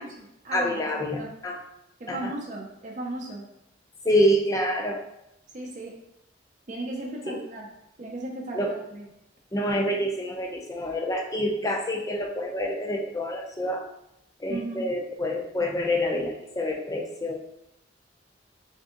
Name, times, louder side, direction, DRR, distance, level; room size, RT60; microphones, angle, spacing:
voice 1, 0.0-1.4 2.0-3.5 4.0-4.2 5.5-6.0 6.7-7.7 8.0-9.1 14.5-14.9, right 2 dB, 40° right, -2 dB, 0.5 m, -36 dB
voice 2, 0.5-1.6 2.1-2.3 4.1-5.1 7.3-7.4 8.5-8.8 9.5-13.9 14.4-17.4, equal, 20° left, 1 dB, 0.4 m, -27 dB
3.5 x 2.6 x 3.7 m, 0.81 s
head